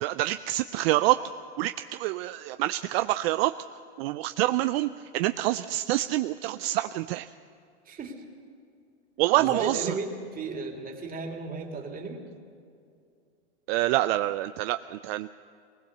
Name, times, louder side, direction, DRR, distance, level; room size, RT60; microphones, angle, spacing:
voice 1, 0.0-1.2 1.6-3.5 4.0-7.3 9.2-9.9 13.7-15.3, right 16 dB, 60° right, 11 dB, 0.6 m, -26 dB
voice 2, 7.8-8.2 9.3-12.2, right 4 dB, 25° right, 2 dB, 2.9 m, -34 dB
21.0 x 20.0 x 6.8 m, 2.4 s
hypercardioid pair, 110°, 34 cm